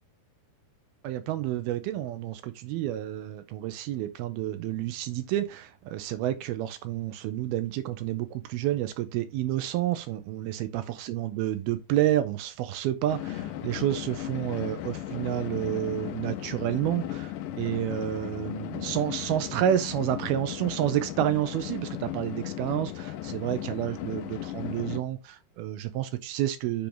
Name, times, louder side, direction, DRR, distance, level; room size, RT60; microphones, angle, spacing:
voice 1, 1.0-26.9, right 12 dB, 80° right, 2.5 m, -30 dB
sound 1, 13.1-25.0, left 12 dB, 85° left, 1.9 m, -36 dB
7.1 x 4.5 x 5.1 m
omnidirectional pair, 4.7 m